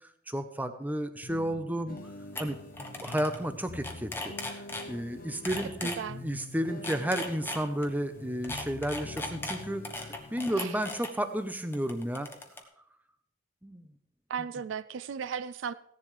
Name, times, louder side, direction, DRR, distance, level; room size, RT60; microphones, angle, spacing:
voice 1, 0.3-2.0 2.4-4.6 4.9-12.3 13.6-13.9, equal, 10° right, 8 dB, 0.8 m, -32 dB
sound 1, 1.2-10.7, left 2 dB, 45° left, 0.7 m, -45 dB
sound 2, 2.0-2.1 2.4-2.5 2.7-3.4 3.7-4.9 5.5-6.0 6.7-7.9 8.4-11.1 11.7-12.6, left 2 dB, 10° left, 1.2 m, -37 dB
voice 2, 5.8-6.2 10.5-10.8 14.3-15.7, right 7 dB, 65° right, 15 dB, 0.4 m, -36 dB
16.5 x 10.5 x 3.3 m, 0.71 s
head